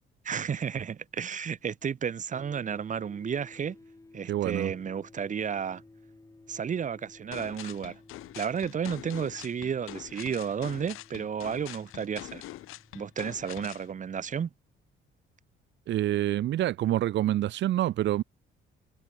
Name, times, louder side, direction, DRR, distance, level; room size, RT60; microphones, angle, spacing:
voice 1, 0.2-3.8 4.1-5.8 6.5-8.0 8.3-12.4 12.9-14.5, right 7 dB, 35° right, 0.9 m, -32 dB
sound 1, 2.3-14.4, left 2 dB, 15° left, 3.6 m, -56 dB
voice 2, 4.3-4.7 15.9-18.2, right 13 dB, 60° right, 0.6 m, -27 dB
sound 2, 7.3-13.9, left 16 dB, 85° left, 1.8 m, -44 dB
cardioid pair, 95°, 21 cm